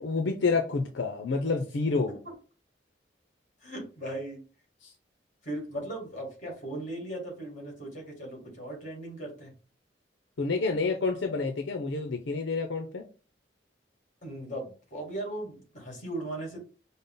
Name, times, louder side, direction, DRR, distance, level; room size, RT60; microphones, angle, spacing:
voice 1, 0.0-2.2 4.8-4.9 10.4-13.0, left 4 dB, 75° left, 4 dB, 0.6 m, -28 dB
voice 2, 3.6-4.4 5.4-9.5 14.2-16.6, right 1 dB, 45° left, 0 dB, 2.1 m, -38 dB
5.4 x 2.0 x 3.8 m, 0.36 s
head